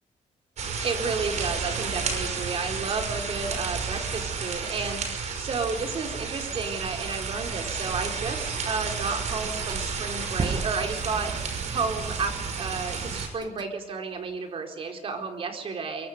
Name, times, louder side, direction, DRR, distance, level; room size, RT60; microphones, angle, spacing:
sound 1, 0.6-13.3, right 5 dB, 70° right, 5.7 m, -32 dB
voice 1, 0.8-11.3 11.7-16.1, right 4 dB, 50° right, 4 dB, 4.4 m, -32 dB
sound 2, 8.7-8.8 9.4-13.7, right 4 dB, 35° right, 1.7 m, -36 dB
23.5 x 23.5 x 6.8 m, 0.84 s
cardioid pair, 140°, 12 cm